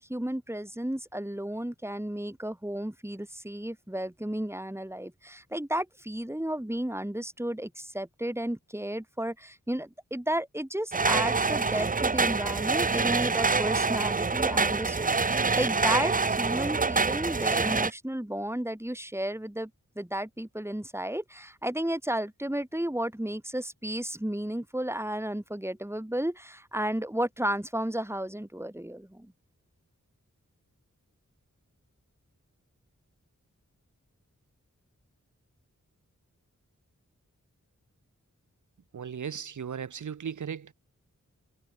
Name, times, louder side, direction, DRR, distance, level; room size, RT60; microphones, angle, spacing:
voice 1, 0.0-19.7 19.9-29.3, right 1 dB, 10° right, 3.3 m, -33 dB
sound 1, 10.9-17.9, right 4 dB, 25° right, 0.6 m, -26 dB
voice 2, 38.9-40.7, right 7 dB, 70° right, 0.7 m, -36 dB
wide cardioid pair, 70°, 31 cm